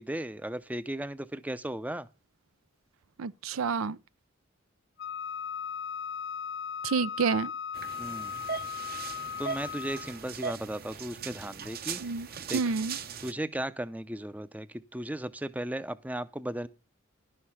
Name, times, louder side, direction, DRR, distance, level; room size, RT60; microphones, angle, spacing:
voice 1, 0.0-2.1 8.0-8.3 9.4-12.1 12.5-12.7 13.2-16.7, right 1 dB, 5° right, 0.5 m, -36 dB
voice 2, 3.2-4.0 6.8-7.5 12.0-12.3 12.5-13.0, right 5 dB, 85° right, 0.5 m, -29 dB
Wind instrument woodwind instrument, 5.0-10.2, left 7 dB, 60° left, 0.7 m, -37 dB
sound 1, 7.7-13.3, right 6 dB, 45° right, 0.8 m, -39 dB
12.0 x 6.5 x 5.7 m
head